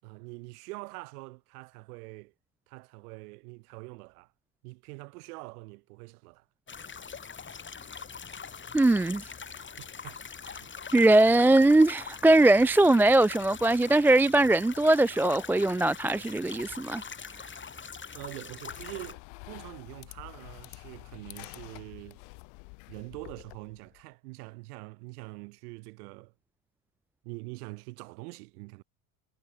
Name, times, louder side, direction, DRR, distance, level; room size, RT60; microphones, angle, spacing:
voice 1, 0.0-2.3 2.7-4.3 4.6-6.5 7.4-7.5 9.8-10.7 18.1-22.2 22.9-26.3 27.2-28.8, right 26 dB, 80° right, 5.6 m, -44 dB
sound 1, 6.7-19.1, left 6 dB, 25° left, 7.4 m, -43 dB
voice 2, 8.7-9.3 10.9-17.0, right 2 dB, 5° right, 0.3 m, -21 dB
sound 2, 18.7-24.0, left 39 dB, 70° left, 2.6 m, -48 dB
supercardioid pair, 105°, 45 cm